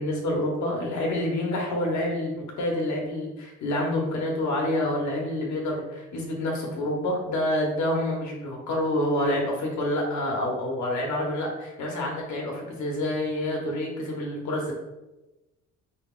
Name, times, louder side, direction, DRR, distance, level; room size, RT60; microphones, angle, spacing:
voice 1, 0.0-14.7, left 1 dB, 70° left, -1 dB, 1.0 m, -28 dB
4.2 x 3.5 x 2.4 m, 1.0 s
cardioid pair, 90°, 30 cm